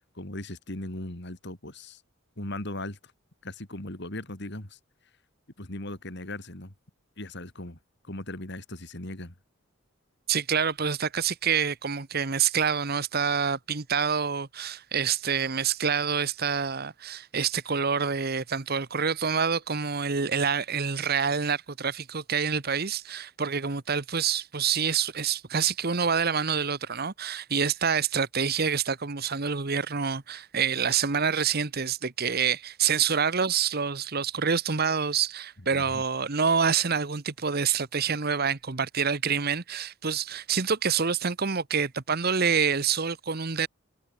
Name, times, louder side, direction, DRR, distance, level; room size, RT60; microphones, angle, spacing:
voice 1, 0.2-2.0 2.4-3.0 3.4-4.8 5.6-6.7 7.2-7.8 8.0-9.3 35.7-36.0, left 1 dB, 55° left, 3.7 m, -38 dB
voice 2, 10.3-43.7, right 6 dB, 50° right, 1.1 m, -27 dB
head